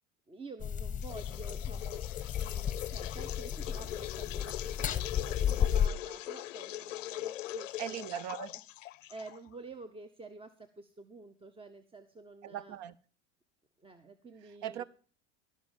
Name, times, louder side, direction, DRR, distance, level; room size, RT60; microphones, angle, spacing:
voice 1, 0.3-2.1 2.3-8.1 8.5-8.6 9.1-12.8 13.8-14.8, right 3 dB, 15° right, 0.8 m, -49 dB
sound 1, 0.6-5.9, left 9 dB, 20° left, 1.0 m, -33 dB
sound 2, 1.0-9.6, left 14 dB, 85° left, 0.5 m, -41 dB
voice 2, 7.8-8.5 12.4-13.0 14.6-14.8, right 10 dB, 55° right, 0.9 m, -39 dB
16.0 x 5.8 x 7.2 m
hypercardioid pair, 85°, 37 cm